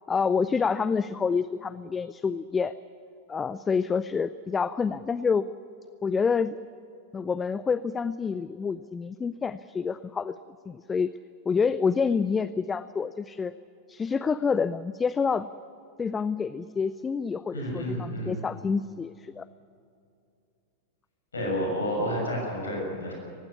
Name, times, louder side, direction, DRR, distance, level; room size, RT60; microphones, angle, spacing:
voice 1, 0.1-2.7 3.3-5.5 6.0-6.6 7.1-10.3 10.7-11.1 11.5-13.5 13.9-15.5 16.0-19.5, left 5 dB, 15° left, 16 dB, 0.4 m, -27 dB
voice 2, 17.5-18.4 21.3-23.1, equal, 75° left, 0 dB, 6.6 m, -30 dB
18.5 x 16.0 x 9.7 m, 2.6 s
figure-of-eight pair, 90°, 0 cm